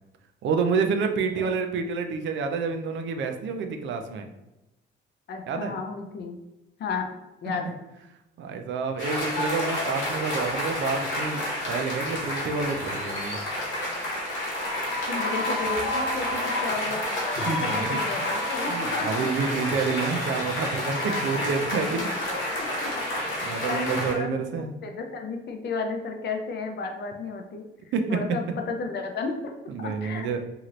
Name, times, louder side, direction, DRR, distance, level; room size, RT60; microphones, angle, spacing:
voice 1, 0.4-4.3 5.5-5.8 8.4-13.4 17.4-18.3 18.7-22.0 23.4-24.7 27.9-28.2 29.7-30.4, right 5 dB, 70° right, 6 dB, 0.5 m, -28 dB
voice 2, 5.3-6.4 6.8-7.1 7.4-7.8 12.3-12.4 15.1-17.0 17.6-19.3 21.9-22.0 22.6-22.9 23.4-24.5 24.8-27.6 28.1-29.5 29.8-30.3, left 4 dB, 60° left, 4 dB, 0.6 m, -33 dB
sound 1, 9.0-24.1, left 1 dB, 75° left, 1.0 m, -29 dB
2.8 x 2.5 x 3.0 m, 0.97 s
cardioid pair, 90°, 20 cm